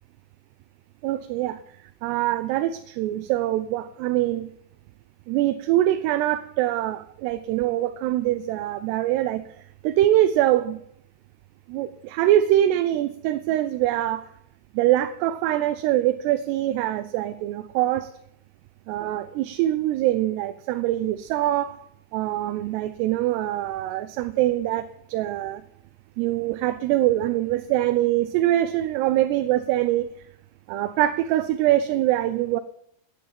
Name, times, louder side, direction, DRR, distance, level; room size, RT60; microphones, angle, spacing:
voice 1, 1.0-1.6 2.0-4.5 5.3-9.4 9.8-10.8 11.7-14.3 14.7-18.1 18.9-21.9 22.1-25.6 26.2-30.1 30.7-32.6, right 13 dB, 90° right, 10 dB, 2.7 m, -23 dB
10.5 x 8.8 x 8.6 m, 0.72 s
omnidirectional pair, 4.7 m